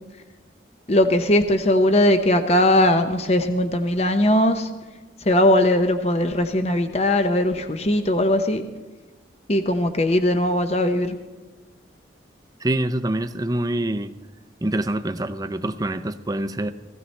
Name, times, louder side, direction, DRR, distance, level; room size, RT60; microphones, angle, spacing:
voice 1, 0.9-4.7 5.2-8.6 9.5-11.2, left 1 dB, 35° left, 8 dB, 0.7 m, -19 dB
voice 2, 12.6-14.1 14.6-16.7, right 1 dB, 20° right, 9 dB, 0.5 m, -25 dB
18.5 x 15.5 x 3.3 m, 1.2 s
head